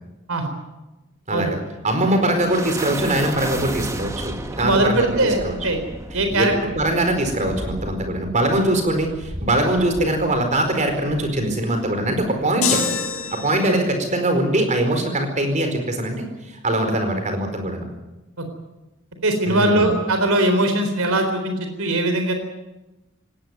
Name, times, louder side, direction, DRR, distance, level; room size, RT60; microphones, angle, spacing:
voice 1, 1.3-1.6 1.8-5.5 6.3-12.8 13.3-17.9 19.5-19.9, right 1 dB, 35° right, 6 dB, 4.6 m, -22 dB
sound 1, 2.0-12.4, right 1 dB, 15° right, 1.6 m, -34 dB
voice 2, 4.6-5.4 5.6-5.8 6.1-6.5 13.7-13.8 18.4-18.5 19.2-22.3, right 1 dB, 70° right, 6 dB, 4.0 m, -20 dB
sound 2, 12.6-13.9, left 6 dB, 75° left, 6.5 m, -25 dB
19.0 x 18.5 x 9.5 m, 1.0 s
head